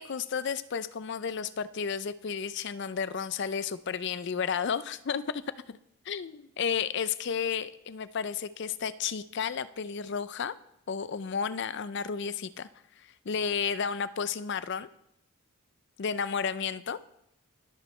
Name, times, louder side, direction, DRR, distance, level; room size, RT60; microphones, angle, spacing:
voice 1, 0.0-5.4 5.7-5.8 6.1-10.5 10.9-12.7 13.0-14.9 16.0-17.0, left 6 dB, 55° left, 15 dB, 0.4 m, -32 dB
21.0 x 8.2 x 3.2 m, 0.76 s
head